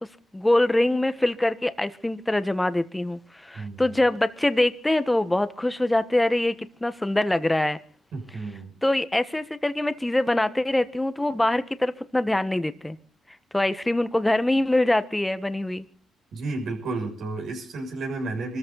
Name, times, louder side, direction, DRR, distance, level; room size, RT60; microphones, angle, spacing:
voice 1, 0.0-7.8 8.8-13.0 13.5-15.8, left 1 dB, 10° left, 12 dB, 1.4 m, -24 dB
voice 2, 8.1-8.7 16.3-18.6, right 3 dB, 70° right, 1 dB, 6.4 m, -32 dB
25.0 x 14.0 x 4.0 m, 0.38 s
cardioid pair, 90°, 0 cm